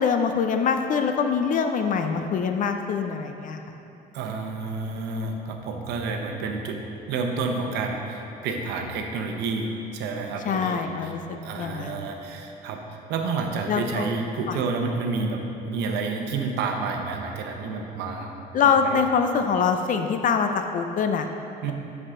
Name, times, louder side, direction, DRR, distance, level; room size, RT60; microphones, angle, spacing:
voice 1, 0.0-3.6 10.5-12.1 13.7-14.1 14.5-14.6 18.5-21.3, left 6 dB, 50° left, 6 dB, 0.5 m, -24 dB
voice 2, 4.1-6.8 7.1-10.8 11.0-11.1 11.4-12.8 13.1-18.4 18.8-19.0 21.6-21.7, right 4 dB, 85° right, 3 dB, 0.8 m, -29 dB
10.0 x 4.8 x 3.7 m, 2.9 s
cardioid pair, 110°, 17 cm